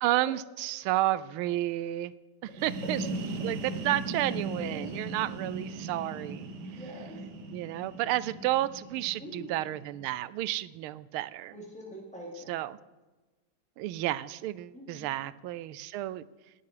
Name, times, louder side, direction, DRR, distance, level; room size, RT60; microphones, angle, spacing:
voice 1, 0.0-2.1 2.4-3.0 3.4-6.5 7.5-11.6 12.5-12.8 13.8-16.2, right 15 dB, 90° right, 18 dB, 1.5 m, -31 dB
sound 1, 2.4-10.1, right 2 dB, 55° right, 1.7 m, -38 dB
voice 2, 4.5-4.9 6.8-7.1 9.2-9.5 11.5-12.5 14.7-15.1, equal, 5° left, -4 dB, 3.7 m, -44 dB
18.0 x 8.4 x 4.9 m, 1.2 s
omnidirectional pair, 2.3 m